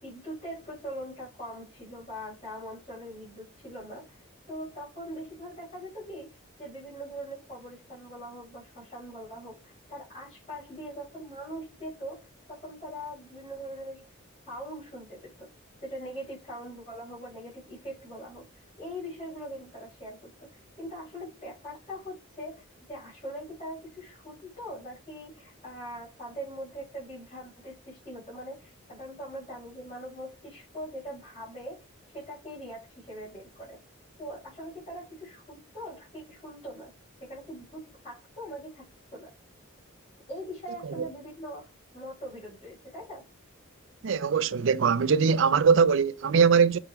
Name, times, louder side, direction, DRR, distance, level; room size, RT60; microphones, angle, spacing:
voice 1, 0.0-14.1 14.5-15.5 15.8-31.8 32.1-33.8 34.2-36.9 37.2-38.8 39.1-39.3 40.3-43.2, equal, 30° left, 4.7 m, -42 dB
voice 2, 44.0-46.8, right 6 dB, 60° right, 0.4 m, -21 dB
7.4 x 4.7 x 3.3 m
head